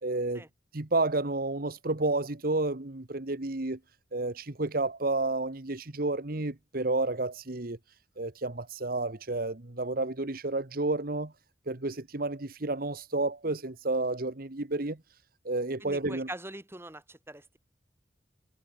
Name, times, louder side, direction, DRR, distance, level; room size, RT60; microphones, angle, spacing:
voice 1, 0.0-0.4 0.7-3.8 4.1-7.8 8.2-11.3 11.7-15.0 15.4-16.3, right 2 dB, 55° right, 1.4 m, -31 dB
voice 2, 15.8-17.6, right 1 dB, 15° right, 4.1 m, -43 dB
head